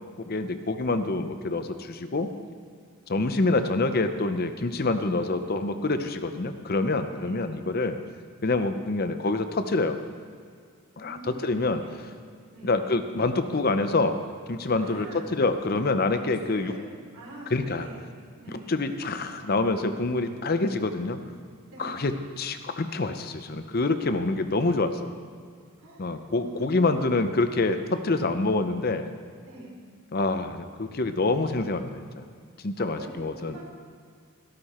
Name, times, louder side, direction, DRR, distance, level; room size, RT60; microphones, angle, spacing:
voice 1, 0.3-2.3 3.1-8.0 8.4-10.0 11.0-11.8 12.6-14.2 14.5-16.7 17.5-17.9 18.7-21.2 21.8-22.1 22.4-25.1 26.0-29.1 30.1-32.3 32.6-33.6, left 3 dB, 40° left, 9 dB, 0.7 m, -26 dB
voice 2, 7.1-7.4 11.0-11.5 11.8-12.0 12.5-12.8 14.7-15.3 16.3-16.9 17.1-18.0 18.4-18.7 21.7-22.0 25.8-27.3 29.4-29.8 32.8-33.6, right 1 dB, 90° right, -3 dB, 4.0 m, -44 dB
13.5 x 13.0 x 4.3 m, 2.1 s
head